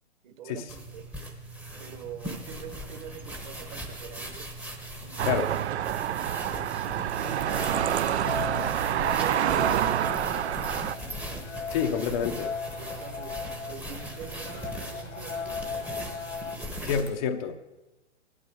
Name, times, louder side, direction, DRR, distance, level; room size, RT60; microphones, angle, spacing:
voice 1, 0.2-1.1 1.8-4.5 5.0-5.9 6.8-9.9 12.8-15.7, right 8 dB, 40° right, 7 dB, 1.4 m, -44 dB
sound 1, 0.7-17.2, right 1 dB, 5° right, 0.9 m, -39 dB
sound 2, 5.2-10.9, right 11 dB, 60° right, 0.5 m, -27 dB
sound 3, 7.2-16.6, left 5 dB, 85° left, 1.4 m, -38 dB
voice 2, 11.7-12.5 16.8-17.8, left 7 dB, 30° left, 5 dB, 0.6 m, -28 dB
16.5 x 12.0 x 4.8 m, 1.1 s
hypercardioid pair, 140°, 37 cm